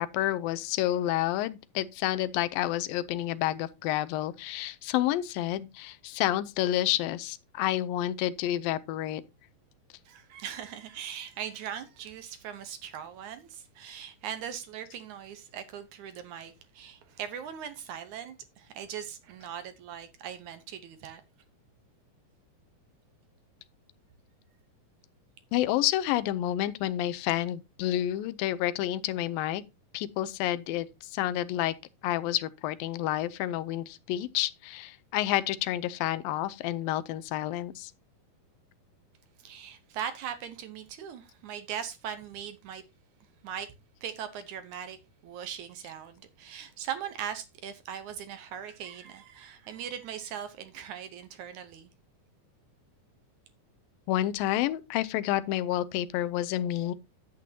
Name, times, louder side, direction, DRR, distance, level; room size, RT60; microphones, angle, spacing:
voice 1, 0.0-9.2 25.5-29.6 29.9-31.8 32.0-37.9 54.1-56.9, left 13 dB, 85° left, 2.4 m, -29 dB
voice 2, 10.1-21.2 39.4-42.8 43.4-43.7 44.0-45.0 45.2-51.9, right 9 dB, 70° right, 2.1 m, -40 dB
10.5 x 8.5 x 2.7 m
omnidirectional pair, 4.0 m